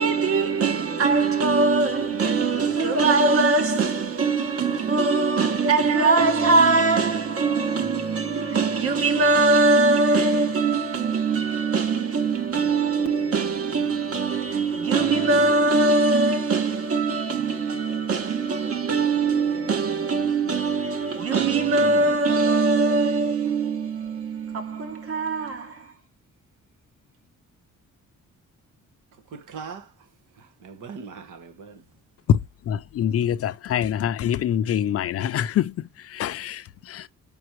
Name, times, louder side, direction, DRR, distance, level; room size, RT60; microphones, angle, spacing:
voice 1, 0.0-25.9, right 3 dB, 50° right, 1.3 m, -22 dB
voice 2, 29.3-29.9 30.4-31.8, right 5 dB, 85° right, 1.3 m, -40 dB
voice 3, 32.7-35.7 36.1-37.1, left 10 dB, 50° left, 0.4 m, -24 dB
5.9 x 5.3 x 3.0 m
wide cardioid pair, 180°, 30 cm